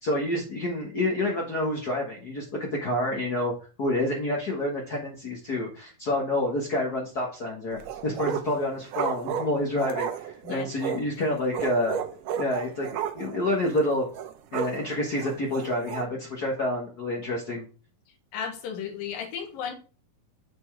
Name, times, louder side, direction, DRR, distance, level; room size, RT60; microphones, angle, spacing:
voice 1, 0.0-3.5 3.8-12.0 12.4-14.1 14.5-17.7, left 1 dB, 60° left, 1.0 m, -28 dB
sound 1, 7.7-8.6 8.9-11.1 11.5-13.4 13.7-13.8 14.1-14.8 15.2-16.1, right 8 dB, 75° right, 2.2 m, -32 dB
voice 2, 18.3-19.7, left 7 dB, 80° left, 3.0 m, -34 dB
7.7 x 4.4 x 4.5 m
omnidirectional pair, 3.9 m